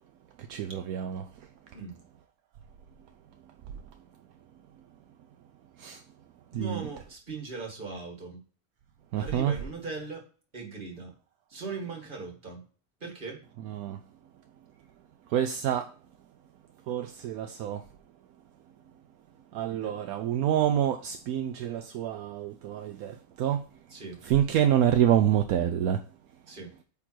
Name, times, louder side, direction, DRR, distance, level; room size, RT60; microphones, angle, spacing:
voice 1, 0.5-1.2 5.8-6.0 6.5-6.9 9.1-9.5 13.6-14.0 15.3-15.9 16.9-17.8 19.5-23.6 24.2-26.0, right 10 dB, 75° right, 1.0 m, -27 dB
voice 2, 6.5-8.4 9.2-10.3 10.5-11.1 11.5-12.6 13.0-13.4 19.7-19.9 23.9-24.2 26.5-26.7, right 4 dB, 35° right, 2.0 m, -39 dB
8.5 x 3.7 x 4.5 m
omnidirectional pair, 1.6 m